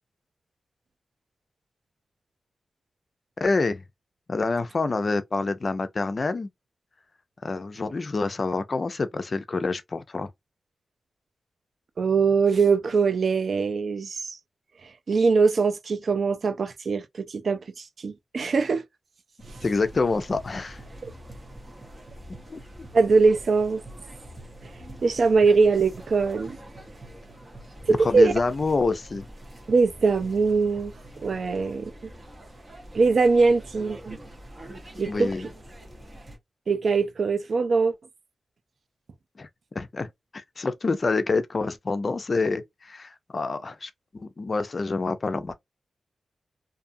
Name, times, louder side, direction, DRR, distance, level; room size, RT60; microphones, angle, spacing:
voice 1, 3.4-3.8 4.3-6.5 7.4-10.3 19.6-20.8 22.5-22.6 27.9-29.3 35.1-35.4 39.4-39.5 39.8-45.6, left 3 dB, 45° left, 0.4 m, -27 dB
voice 2, 12.0-14.4 14.8-18.8 21.0-21.1 22.9-23.8 24.6-24.7 25.0-26.6 27.9-28.3 29.7-30.9 31.2-31.9 32.9-34.2 35.0-35.3 36.7-37.9, right 4 dB, 65° right, 0.4 m, -22 dB
sound 1, 19.4-36.4, right 1 dB, 30° right, 1.0 m, -44 dB
2.6 x 2.4 x 2.6 m
wide cardioid pair, 95°, 0 cm